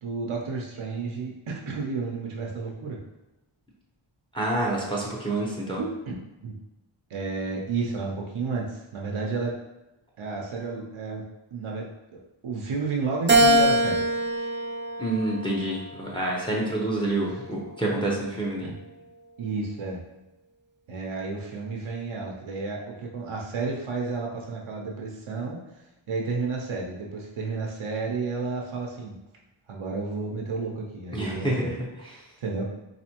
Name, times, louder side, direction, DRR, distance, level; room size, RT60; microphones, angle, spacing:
voice 1, 0.0-3.0 5.8-6.2 6.4-6.6 7.1-9.6 10.2-11.2 11.5-14.0 14.3-14.5 18.6-18.8 19.4-20.0 20.9-25.6 26.1-29.2 29.7-31.7 32.4-32.6, right 4 dB, 85° right, -1 dB, 0.7 m, -31 dB
voice 2, 4.3-5.8 15.0-18.7 31.1-31.7, right 1 dB, 10° left, -3 dB, 0.7 m, -27 dB
Keyboard (musical), 13.3-15.8 16.4-17.6, right 1 dB, 25° right, 0.4 m, -24 dB
4.1 x 2.7 x 2.9 m, 0.95 s
wide cardioid pair, 70°, 48 cm